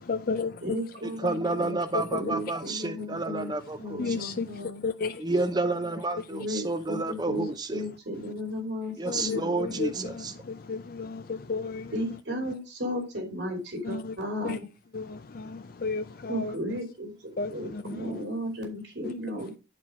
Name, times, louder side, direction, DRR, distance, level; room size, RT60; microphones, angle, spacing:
voice 1, 0.0-0.6 1.9-2.4 4.0-5.3 9.1-11.9 13.8-14.1 14.4-14.6 14.9-16.5 17.4-18.1 19.0-19.1, left 4 dB, 50° left, 0.5 m, -33 dB
voice 2, 0.6-1.8 2.1-3.5 3.8-4.8 6.3-10.1 11.9-14.6 16.3-19.6, equal, 75° right, 2.9 m, -35 dB
voice 3, 1.2-4.2 5.2-7.8 9.0-10.3, right 2 dB, 20° right, 0.6 m, -30 dB
10.5 x 4.4 x 4.9 m
head